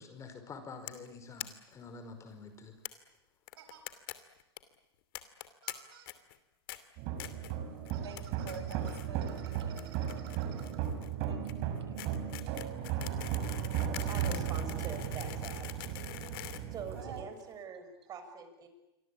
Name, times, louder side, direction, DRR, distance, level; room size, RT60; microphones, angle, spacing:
voice 1, 0.0-2.8, left 4 dB, 20° left, 8 dB, 5.1 m, -48 dB
sound 1, 0.9-1.1 1.4-1.5 1.7-1.8 2.0-2.1 2.9-3.0 3.5-4.1 4.4-4.6 5.2-5.7 6.1-6.4 6.7-6.8 7.2-7.5 7.9-8.2 8.5-9.1 9.4-17.4, left 17 dB, 55° left, 2.7 m, -44 dB
sound 2, 2.1-2.2 3.6-3.8 5.6-6.1 7.9-10.8, right 9 dB, 65° right, 6.2 m, -55 dB
sound 3, 7.0-17.2, right 9 dB, 45° right, 5.0 m, -36 dB
voice 2, 8.0-9.9 11.3-12.1 14.0-14.1 16.9-17.2, right 5 dB, 85° right, 8 dB, 6.9 m, -48 dB
voice 3, 13.8-15.7 16.7-18.7, right 6 dB, 30° right, 8 dB, 6.6 m, -45 dB
28.0 x 24.0 x 8.6 m, 0.96 s
hypercardioid pair, 125°, 13 cm